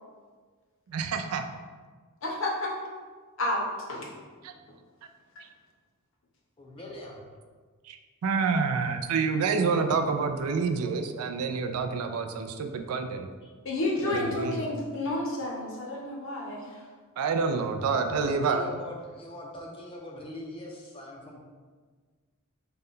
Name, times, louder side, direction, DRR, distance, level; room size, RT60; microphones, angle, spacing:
voice 1, 0.9-1.4 4.4-4.5 7.9-13.3 14.0-14.7 17.2-18.6, right 5 dB, 85° right, 6 dB, 0.3 m, -28 dB
voice 2, 2.2-2.7 3.4-4.1 13.6-16.8, left 2 dB, 60° left, -1 dB, 0.7 m, -30 dB
voice 3, 6.6-7.3 13.4-13.5 17.9-21.4, left 1 dB, 25° left, -1 dB, 0.4 m, -42 dB
3.9 x 2.2 x 3.7 m, 1.5 s
head